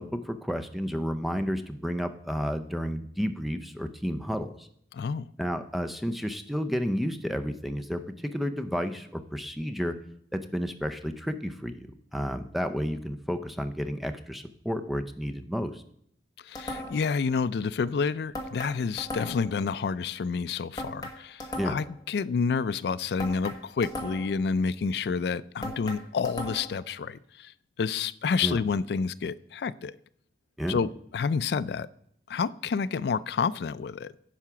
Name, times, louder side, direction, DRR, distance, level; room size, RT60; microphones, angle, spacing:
voice 1, 0.0-4.7 5.4-10.0 10.3-15.8 21.5-21.8 28.4-28.6 30.6-30.8, equal, ahead, 8 dB, 0.5 m, -31 dB
voice 2, 4.9-5.2 16.4-30.0 30.7-31.9 32.3-34.1, left 5 dB, 60° left, 16 dB, 0.3 m, -29 dB
sound 1, 16.5-17.1 18.3-19.6 20.8-22.0 23.2-24.4 25.6-26.8, left 1 dB, 20° left, 1.3 m, -37 dB
10.0 x 4.8 x 6.0 m, 0.68 s
head